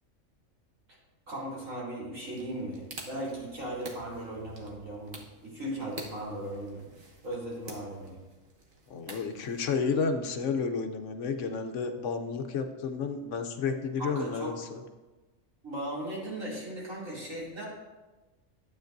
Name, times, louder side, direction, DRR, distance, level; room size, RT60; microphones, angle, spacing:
voice 1, 1.3-6.9 7.2-8.2 14.0-14.5 15.6-17.7, right 1 dB, 75° right, -6 dB, 3.2 m, -37 dB
sound 1, 2.3-10.1, right 1 dB, 40° right, 1.3 m, -48 dB
voice 2, 8.9-14.8, left 5 dB, 70° left, 6 dB, 1.0 m, -31 dB
12.0 x 8.2 x 2.6 m, 1.2 s
omnidirectional pair, 1.4 m